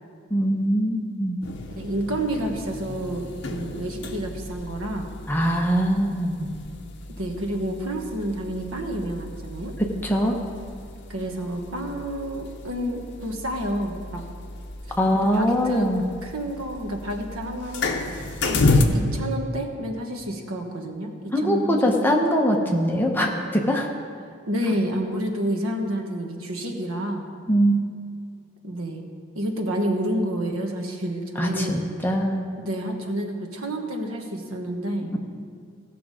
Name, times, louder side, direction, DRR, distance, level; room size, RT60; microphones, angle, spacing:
voice 1, 0.3-1.4 5.3-6.5 10.0-10.4 15.0-16.0 21.3-23.9 27.5-27.8 31.4-32.5 35.4-35.5, equal, 10° left, 1 dB, 0.8 m, -22 dB
sound 1, 1.4-18.8, left 3 dB, 55° left, 0.8 m, -31 dB
voice 2, 1.8-5.1 7.2-9.7 11.1-14.2 15.1-15.9 16.2-18.1 18.4-22.1 24.5-27.3 28.6-29.0 29.3-31.9 32.6-35.1, right 1 dB, 80° right, 3 dB, 1.2 m, -29 dB
16.5 x 6.0 x 5.0 m, 2.2 s
head